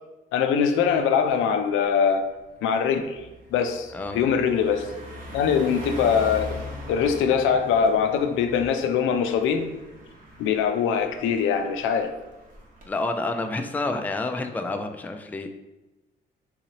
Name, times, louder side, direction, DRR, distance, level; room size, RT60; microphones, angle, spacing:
voice 1, 0.3-2.3 2.6-3.2 3.5-4.9 5.3-6.6 6.9-9.7 10.4-12.1, left 7 dB, 90° left, 6 dB, 0.4 m, -22 dB
Car passing by, 1.3-1.5 1.9-12.9, equal, 45° right, 1.0 m, -41 dB
voice 2, 12.9-15.5, left 2 dB, 10° left, 6 dB, 0.3 m, -29 dB
3.8 x 2.9 x 2.8 m, 1.0 s
cardioid pair, 90°, 20 cm